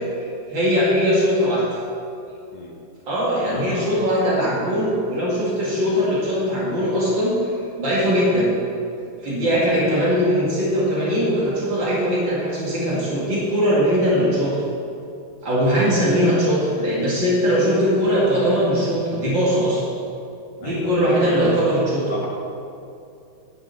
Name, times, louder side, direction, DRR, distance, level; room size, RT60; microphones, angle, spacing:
voice 1, 0.5-1.6 3.1-8.5 9.2-14.6 15.4-19.8 20.6-22.1, equal, 65° right, -7 dB, 3.0 m, -20 dB
voice 2, 3.5-4.1 9.5-9.6 15.6-15.8 20.6-21.5 22.1-22.3, left 1 dB, 70° left, -2 dB, 2.6 m, -33 dB
12.5 x 10.5 x 4.1 m, 2.5 s
omnidirectional pair, 2.2 m